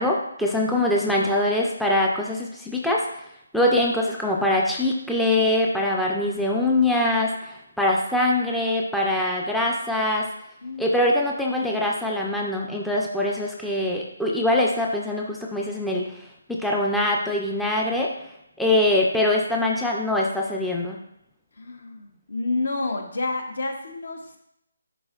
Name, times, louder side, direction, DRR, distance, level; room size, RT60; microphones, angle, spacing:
voice 1, 0.0-3.0 3.5-10.3 10.8-16.1 16.5-18.1 18.6-21.0, left 1 dB, ahead, -3 dB, 0.4 m, -23 dB
voice 2, 10.6-10.9 21.6-24.4, left 3 dB, 70° left, 3 dB, 1.2 m, -30 dB
10.5 x 3.8 x 2.4 m, 0.79 s
hypercardioid pair, 165°, 0 cm